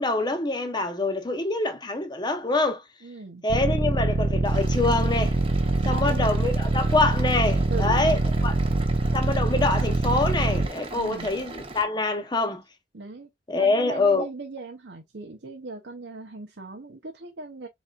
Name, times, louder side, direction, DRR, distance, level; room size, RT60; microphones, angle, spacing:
voice 1, 0.0-2.8 3.4-5.3 5.8-8.6 9.1-12.6 13.5-14.3, left 2 dB, 25° left, 0.9 m, -25 dB
voice 2, 3.0-3.4 5.8-6.3 7.7-8.3 10.9-11.4 12.9-17.7, right 3 dB, 85° right, 0.9 m, -38 dB
sound 1, 3.5-10.7, right 3 dB, 50° right, 0.6 m, -24 dB
sound 2, 4.4-11.8, right 2 dB, 30° right, 1.0 m, -40 dB
4.1 x 4.1 x 2.4 m
head